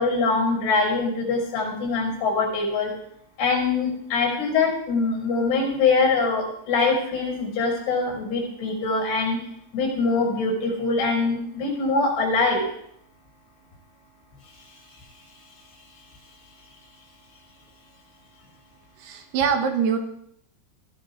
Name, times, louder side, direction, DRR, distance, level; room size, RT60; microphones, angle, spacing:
voice 1, 0.0-2.9 3.4-9.4 9.7-12.7, left 3 dB, 85° left, 1 dB, 7.8 m, -23 dB
voice 2, 19.0-20.0, right 6 dB, 75° right, 5 dB, 3.0 m, -23 dB
23.0 x 16.0 x 2.5 m, 0.73 s
omnidirectional pair, 5.0 m